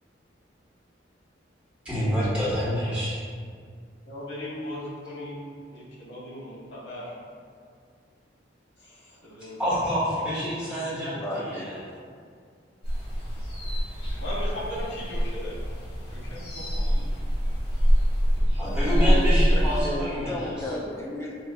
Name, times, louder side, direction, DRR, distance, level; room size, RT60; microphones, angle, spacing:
voice 1, 1.8-3.1 9.6-11.1 11.5-11.6 18.5-20.5, equal, 5° right, -13 dB, 1.3 m, -27 dB
voice 2, 4.1-5.4 5.7-7.1 8.8-9.6 10.6-11.2 14.1-15.5 16.1-17.0, left 1 dB, 85° left, -5 dB, 1.0 m, -38 dB
voice 3, 10.5-12.3 18.2-21.3, left 1 dB, 15° left, -3 dB, 0.4 m, -34 dB
sound 1, 12.8-19.8, equal, 65° left, 1.3 m, -24 dB
4.9 x 2.4 x 2.2 m, 2.1 s
head